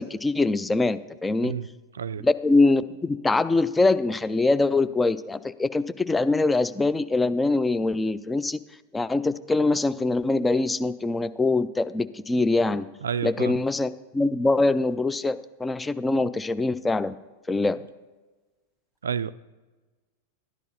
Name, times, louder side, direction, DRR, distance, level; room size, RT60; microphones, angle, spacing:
voice 1, 0.0-1.5 2.2-8.6 8.9-12.9 13.2-17.1 17.5-17.8, left 3 dB, 10° left, 14 dB, 0.4 m, -23 dB
voice 2, 1.9-2.3 13.0-13.5 19.0-19.3, right 7 dB, 70° right, 17 dB, 0.3 m, -29 dB
12.0 x 11.0 x 4.0 m, 1.2 s
figure-of-eight pair, 90°, 0 cm